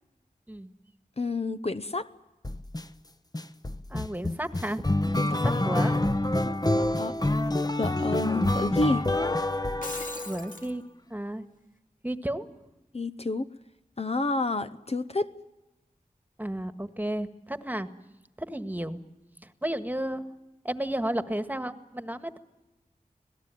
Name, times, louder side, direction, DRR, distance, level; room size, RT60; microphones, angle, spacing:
voice 1, 1.2-2.1 5.1-5.6 6.8-7.2 7.8-9.0 12.9-13.4 14.0-15.3, left 2 dB, 45° left, 10 dB, 0.9 m, -29 dB
sound 1, 2.4-2.8 3.3-10.5, left 1 dB, 25° left, 1.1 m, -27 dB
voice 2, 3.9-4.8 5.4-5.9 10.2-10.8 11.1-11.4 12.0-12.5 16.4-17.9 18.4-19.0 19.6-20.3 20.6-22.4, right 1 dB, 10° right, 10 dB, 1.7 m, -32 dB
Shatter, 9.6-10.7, left 2 dB, 65° left, 2.4 m, -39 dB
26.5 x 18.0 x 9.3 m, 1.0 s
cardioid pair, 45°, 15 cm